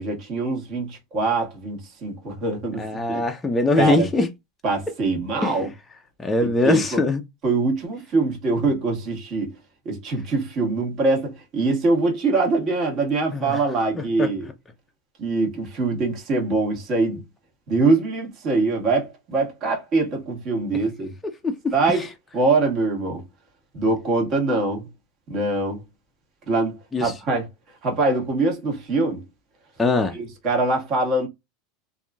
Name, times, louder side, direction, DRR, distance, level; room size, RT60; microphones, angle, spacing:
voice 1, 0.0-3.2 3.8-4.1 4.6-5.7 6.6-7.0 7.4-9.5 9.8-14.5 15.2-17.2 17.7-21.1 21.7-22.1 22.3-23.2 23.7-24.9 25.3-25.8 26.5-27.5 27.8-29.2 30.1-31.3, right 3 dB, 40° right, 1.4 m, -23 dB
voice 2, 2.8-4.3 5.4-5.6 6.2-7.2 13.3-13.6 14.0-14.3 21.2-22.1 26.9-27.1 29.8-30.1, left 2 dB, 15° left, 0.4 m, -22 dB
2.9 x 2.5 x 2.3 m
supercardioid pair, 130°, 0 cm